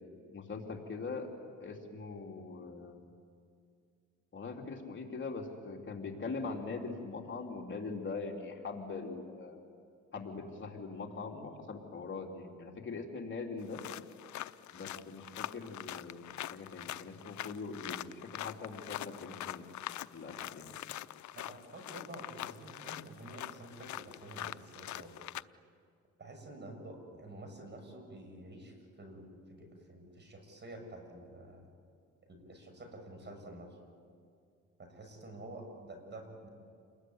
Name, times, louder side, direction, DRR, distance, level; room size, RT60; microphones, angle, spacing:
voice 1, 0.3-1.3 1.6-3.1 4.3-9.6 10.1-13.8 14.7-19.6 20.1-20.7, left 4 dB, 40° left, 1 dB, 3.5 m, -42 dB
sound 1, 13.6-25.4, left 14 dB, 70° left, 0.7 m, -44 dB
voice 2, 21.3-25.2 26.2-31.6 32.2-33.8 34.8-36.5, right 1 dB, 35° right, 4 dB, 7.3 m, -49 dB
29.0 x 21.5 x 9.7 m, 2.3 s
cardioid pair, 90°, 30 cm